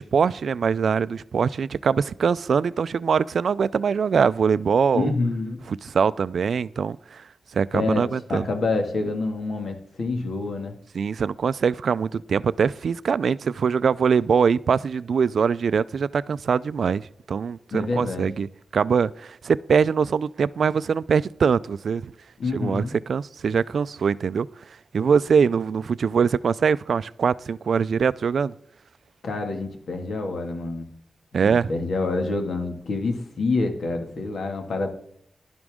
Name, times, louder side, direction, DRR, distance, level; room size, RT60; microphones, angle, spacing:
voice 1, 0.0-5.1 5.7-7.2 7.5-8.4 10.9-18.5 18.7-22.1 22.5-24.5 24.9-28.5 31.3-31.7, right 6 dB, 70° right, 0.3 m, -23 dB
voice 2, 4.9-5.6 7.7-10.8 17.7-18.3 22.4-22.9 29.2-30.9 31.4-34.9, left 3 dB, 70° left, 2.0 m, -27 dB
11.5 x 11.0 x 3.6 m
wide cardioid pair, 150°, 0 cm